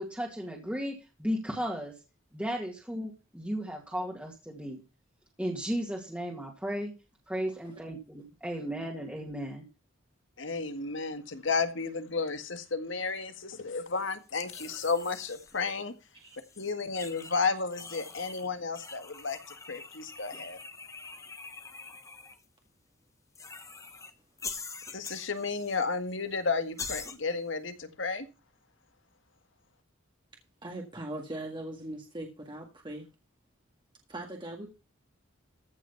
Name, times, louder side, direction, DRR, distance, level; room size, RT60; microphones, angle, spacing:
voice 1, 0.0-1.9 2.3-4.8 5.4-6.9 7.3-9.6, equal, 5° right, -1 dB, 2.2 m, -35 dB
voice 2, 10.4-15.9 16.6-19.4 19.7-20.6 24.9-28.3, left 4 dB, 70° left, 9 dB, 1.8 m, -32 dB
sound 1, 14.4-15.6 16.3-17.4 17.7-18.5 18.8-22.4 23.4-24.1 24.4-25.8 26.1-26.2 26.8-27.2, left 4 dB, 15° left, 1.2 m, -44 dB
voice 3, 30.6-33.1 34.1-34.7, right 1 dB, 25° right, 1 dB, 1.8 m, -40 dB
15.0 x 6.1 x 5.8 m, 0.30 s
head